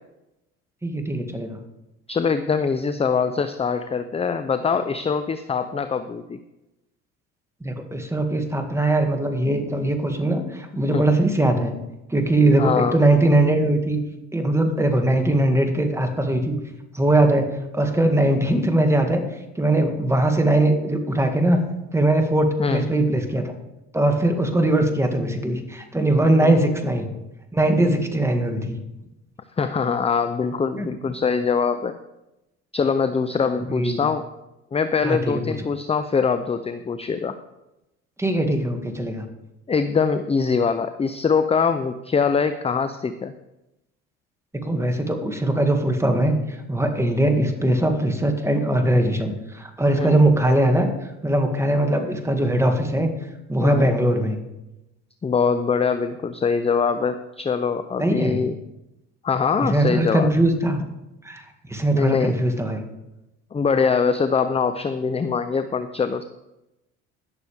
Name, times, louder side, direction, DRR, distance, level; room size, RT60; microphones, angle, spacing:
voice 1, 0.8-1.6 7.6-11.7 12.1-14.0 14.3-16.5 16.9-17.5 17.7-19.2 19.6-21.6 21.9-23.5 23.9-27.1 27.5-28.8 30.8-30.9 33.7-34.0 35.0-35.4 38.2-39.2 44.6-50.9 51.2-53.1 53.5-54.4 58.0-58.4 59.6-60.8 61.2-61.4 61.7-62.8, right 1 dB, 10° right, 4 dB, 2.1 m, -20 dB
voice 2, 2.1-6.4 10.9-11.0 12.6-13.0 22.6-22.9 26.4-26.6 29.6-31.9 32.7-34.2 34.7-37.4 39.7-43.3 50.0-50.3 53.6-53.9 55.2-58.5 59.2-60.3 61.9-62.3 63.5-66.2, left 5 dB, 20° left, 10 dB, 0.5 m, -23 dB
20.5 x 6.9 x 3.5 m, 0.94 s
supercardioid pair, 75°, 34 cm